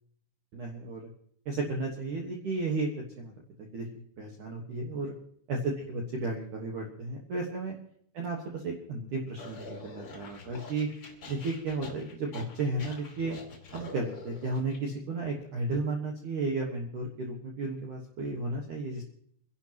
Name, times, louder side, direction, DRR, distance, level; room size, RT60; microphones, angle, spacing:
voice 1, 0.5-1.1 1.5-2.9 3.2-3.3 3.6-3.9 4.2-5.1 5.5-7.7 8.1-10.9 11.3-13.4 13.7-19.0, right 3 dB, 65° right, 0 dB, 2.0 m, -33 dB
sound 1, 9.4-14.8, left 3 dB, 40° left, 2.1 m, -45 dB
28.0 x 11.5 x 3.0 m, 0.65 s
omnidirectional pair, 5.9 m